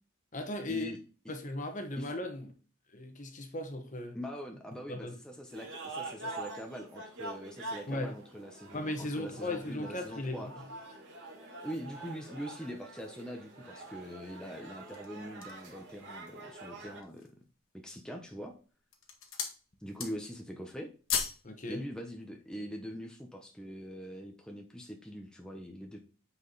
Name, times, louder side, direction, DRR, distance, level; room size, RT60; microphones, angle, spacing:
voice 1, 0.3-0.9 1.3-2.5 2.9-4.2 4.9-5.2 7.9-8.1 8.7-10.5 21.4-21.8, left 1 dB, 40° left, 1.3 m, -37 dB
voice 2, 4.1-10.5 11.6-17.3 17.8-18.5 19.8-20.9 21.7-26.0, equal, 5° left, 1.0 m, -43 dB
sound 1, 5.5-17.0, right 2 dB, 60° right, 3.0 m, -45 dB
sound 2, 14.7-15.7 16.3-16.4 16.9-17.4 18.1-18.5 18.8-19.6 19.9-20.4 20.7-21.5 21.8-21.9, left 7 dB, 80° left, 1.8 m, -36 dB
8.2 x 5.0 x 4.1 m
head